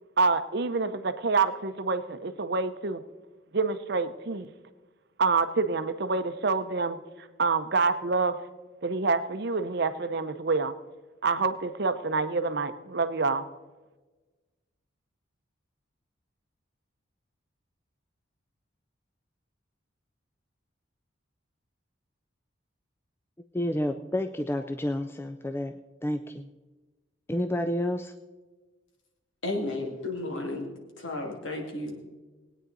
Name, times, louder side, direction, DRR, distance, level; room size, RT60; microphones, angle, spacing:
voice 1, 0.2-3.0 3.5-4.5 5.2-7.0 7.4-8.4 8.8-10.7 11.2-13.4, right 4 dB, 55° right, 10 dB, 0.7 m, -27 dB
voice 2, 23.5-25.8 26.0-26.5 27.3-28.1, left 1 dB, 10° left, 8 dB, 0.3 m, -30 dB
voice 3, 29.4-30.7 31.0-32.0, left 2 dB, 70° left, 1 dB, 2.3 m, -33 dB
20.0 x 9.1 x 4.0 m, 1.2 s
head